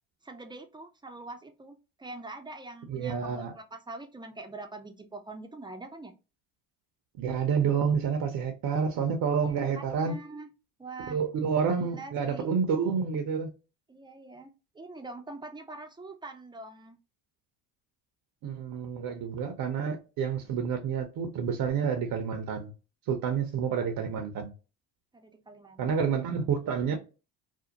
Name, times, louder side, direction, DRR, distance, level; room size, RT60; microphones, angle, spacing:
voice 1, 0.2-6.1 9.4-10.5 10.8-11.2 11.8-12.5 13.9-14.5 14.7-17.0 25.1-26.0, right 2 dB, 10° right, 0.5 m, -44 dB
voice 2, 2.9-3.5 7.2-10.2 11.1-13.5 18.4-22.7 23.1-24.5 25.8-27.0, right 6 dB, 55° right, 0.7 m, -29 dB
2.6 x 2.0 x 2.8 m
supercardioid pair, 80°, 44 cm